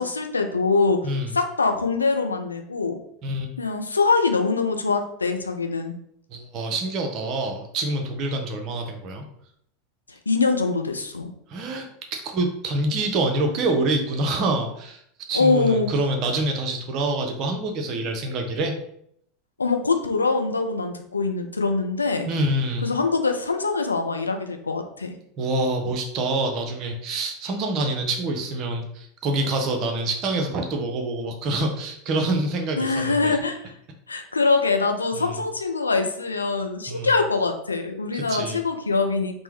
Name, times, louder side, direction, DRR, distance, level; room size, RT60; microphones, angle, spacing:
voice 1, 0.0-1.1 1.3-3.0 3.6-5.9 10.3-11.3 15.3-15.9 19.6-22.3 22.8-25.1 32.8-33.7 34.1-39.4, left 4 dB, 80° left, 5 dB, 0.3 m, -23 dB
voice 2, 1.0-1.3 3.2-3.5 6.3-9.2 11.5-15.0 15.3-18.7 22.2-22.9 25.4-33.3 35.1-35.4 36.9-37.1 38.1-38.6, right 2 dB, 40° right, 3 dB, 0.6 m, -26 dB
3.3 x 2.0 x 3.1 m, 0.70 s
figure-of-eight pair, 80°, 0 cm